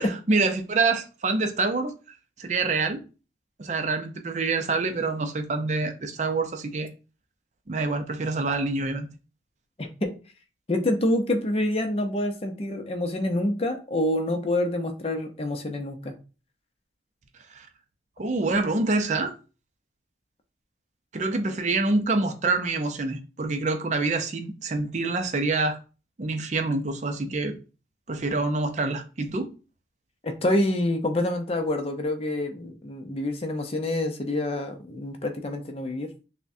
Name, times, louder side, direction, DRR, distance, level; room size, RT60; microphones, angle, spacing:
voice 1, 0.0-1.9 2.4-3.0 3.6-6.9 7.7-9.1 17.6-17.7 18.2-19.3 21.1-25.8 26.2-27.6 28.1-29.5, right 3 dB, 40° right, 0.5 m, -26 dB
voice 2, 9.8-10.1 10.7-16.1 30.2-36.1, left 1 dB, 35° left, 0.6 m, -27 dB
5.7 x 2.1 x 2.6 m
head